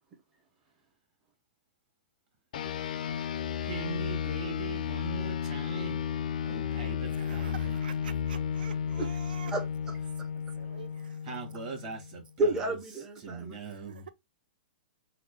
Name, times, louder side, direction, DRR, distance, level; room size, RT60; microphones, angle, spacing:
sound 1, 2.5-12.3, left 7 dB, 60° left, 0.4 m, -33 dB
voice 1, 3.6-6.0 6.4-7.8 11.2-12.5 13.2-14.0, right 5 dB, 35° right, 1.5 m, -41 dB
voice 2, 7.0-9.5 10.4-11.2 13.7-14.1, right 7 dB, 75° right, 0.5 m, -48 dB
voice 3, 9.0-10.0 12.4-13.6, right 1 dB, 10° right, 0.6 m, -32 dB
3.8 x 2.1 x 3.2 m
hypercardioid pair, 170°, 5 cm